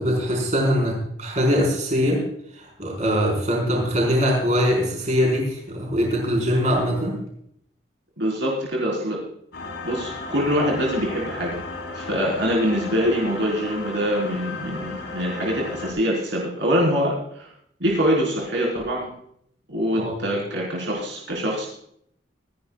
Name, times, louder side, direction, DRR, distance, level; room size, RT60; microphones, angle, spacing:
voice 1, 0.0-2.3 2.5-7.2 19.9-20.2, equal, 40° right, -2 dB, 4.7 m, -22 dB
voice 2, 8.2-9.2 9.8-11.6 11.9-17.5 17.8-19.1 19.7-21.7, equal, 70° right, -3 dB, 4.2 m, -24 dB
sound 1, 9.5-15.9, left 3 dB, 90° left, 3.8 m, -34 dB
26.0 x 11.0 x 2.4 m, 0.69 s
head